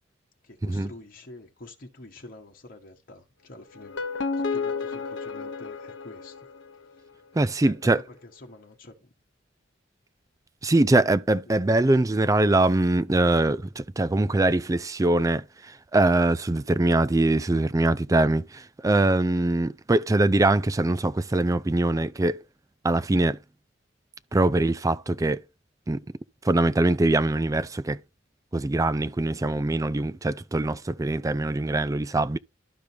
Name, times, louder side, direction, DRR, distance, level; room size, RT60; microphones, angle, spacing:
voice 1, 0.4-4.0 4.3-6.4 6.9-7.0 7.6-9.1, left 2 dB, 45° left, 1.4 m, -47 dB
sound 1, 3.7-6.9, left 4 dB, 65° left, 0.8 m, -32 dB
voice 2, 7.3-8.0 10.6-22.4 22.8-23.4 24.3-25.4 25.9-26.0 26.4-28.0 28.5-32.4, right 2 dB, 15° right, 0.4 m, -23 dB
12.0 x 5.1 x 2.8 m
head